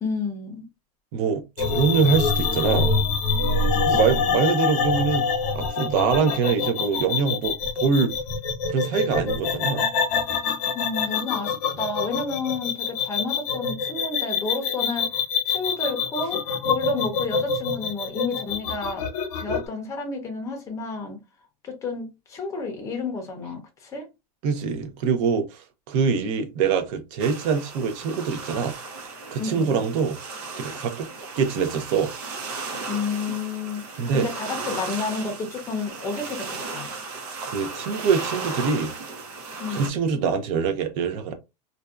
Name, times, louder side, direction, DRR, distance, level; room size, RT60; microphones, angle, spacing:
voice 1, 0.0-0.7 3.7-4.3 10.7-15.1 15.4-19.1 19.4-21.2 21.6-24.1 29.4-29.9 32.9-37.0 39.6-39.9, left 4 dB, 15° left, 0.6 m, -31 dB
voice 2, 1.1-2.9 3.8-5.3 5.5-8.2 8.7-9.9 24.4-28.7 29.3-30.2 30.6-31.1 31.4-32.1 34.0-34.3 37.5-38.9 39.7-41.3, right 6 dB, 55° right, 0.6 m, -24 dB
sound 1, 1.6-19.7, left 5 dB, 75° left, 0.8 m, -25 dB
sound 2, 27.2-39.9, right 4 dB, 90° right, 0.8 m, -36 dB
2.6 x 2.2 x 2.3 m
supercardioid pair, 160°, 20 cm